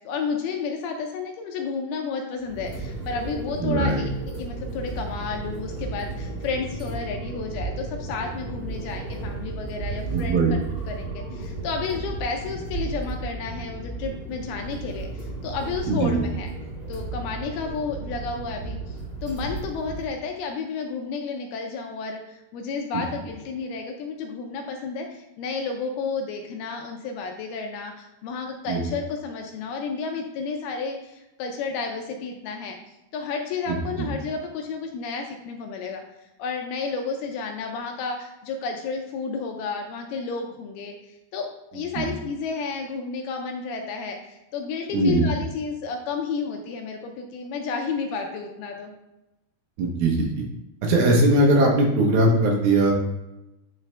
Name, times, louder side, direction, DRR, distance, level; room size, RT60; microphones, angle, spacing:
voice 1, 0.0-10.6 10.9-16.5 16.9-19.0 19.2-32.8 33.1-36.0 36.4-48.9, left 5 dB, 80° left, 3 dB, 2.4 m, -31 dB
sound 1, 2.4-20.0, right 3 dB, 25° right, 2.5 m, -34 dB
voice 2, 3.6-4.1 10.1-10.5 15.9-16.2 28.7-28.8 33.7-34.1 42.0-42.1 44.9-45.3 49.8-50.4 50.8-52.9, right 2 dB, 70° right, 0 dB, 2.5 m, -20 dB
9.2 x 4.7 x 3.3 m, 0.94 s
omnidirectional pair, 4.8 m